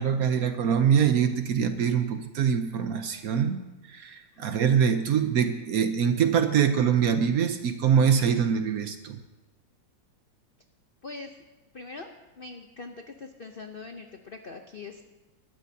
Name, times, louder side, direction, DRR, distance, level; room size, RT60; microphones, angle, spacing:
voice 1, 0.0-3.6 3.9-9.2, right 7 dB, 60° right, 8 dB, 1.0 m, -24 dB
voice 2, 11.0-11.4 11.7-12.1 12.4-15.0, left 3 dB, 75° left, 5 dB, 0.5 m, -42 dB
20.5 x 13.0 x 2.8 m, 1.1 s
omnidirectional pair, 2.1 m